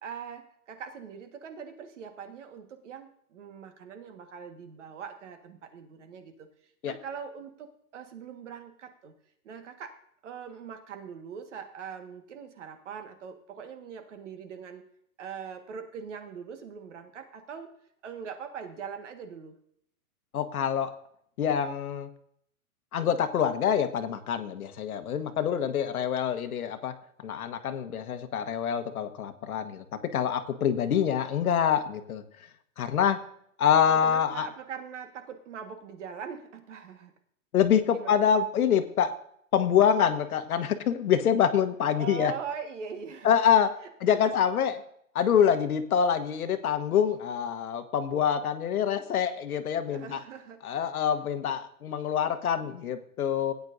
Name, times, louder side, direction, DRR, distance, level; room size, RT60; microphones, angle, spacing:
voice 1, 0.0-6.5 6.8-9.1 9.4-9.9 10.2-14.8 15.2-17.7 18.0-19.5 33.9-37.1 37.9-38.2 42.0-43.5 44.1-44.4 49.9-50.8, right 7 dB, 55° right, 6 dB, 1.7 m, -42 dB
voice 2, 20.3-20.9 21.4-22.1 22.9-26.9 27.2-32.2 32.8-33.2 33.6-34.5 37.5-39.1 39.5-42.3 43.2-43.7 44.0-44.8 45.1-50.2 50.6-53.5, left 8 dB, 80° left, 9 dB, 1.3 m, -26 dB
17.0 x 9.4 x 2.7 m, 0.67 s
hypercardioid pair, 170°, 43 cm